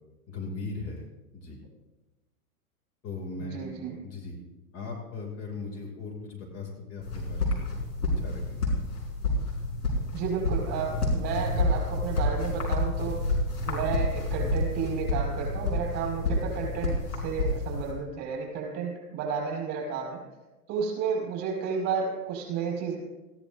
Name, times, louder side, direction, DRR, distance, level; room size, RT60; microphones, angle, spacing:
voice 1, 0.3-1.1 1.3-1.6 3.0-3.7 4.0-4.3 4.7-7.7 8.2-8.6, left 3 dB, 30° left, 0 dB, 2.7 m, -38 dB
voice 2, 3.4-3.9 10.1-13.4 13.7-20.2 20.7-23.0, right 6 dB, 35° right, -1 dB, 5.7 m, -32 dB
sound 1, 7.0-17.9, left 2 dB, 80° left, 4.8 m, -29 dB
19.0 x 15.0 x 2.7 m, 1.1 s
figure-of-eight pair, 105°, 45 cm